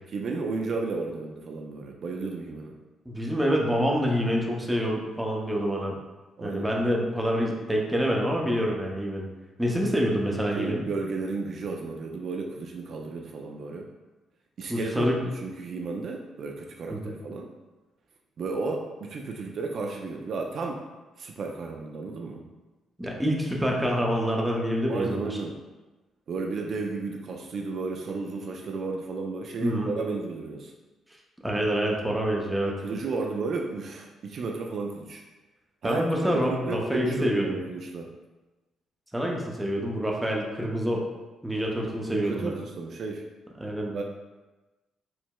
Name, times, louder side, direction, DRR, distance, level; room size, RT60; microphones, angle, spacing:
voice 1, 0.1-2.8 6.4-6.7 10.5-13.9 14.6-17.5 18.4-20.9 21.2-22.4 24.9-25.6 26.3-30.7 32.8-35.2 35.8-38.1 42.1-43.3 43.9-44.0, right 3 dB, 55° right, 1 dB, 0.3 m, -33 dB
voice 2, 3.1-6.0 6.4-9.3 9.6-10.8 14.7-15.2 16.9-17.1 23.0-25.3 29.6-29.9 31.4-32.7 35.8-37.6 39.1-41.0 41.4-42.5 43.6-44.0, equal, 5° right, -1 dB, 0.5 m, -26 dB
4.5 x 2.0 x 2.2 m, 1.1 s
cardioid pair, 90°, 0 cm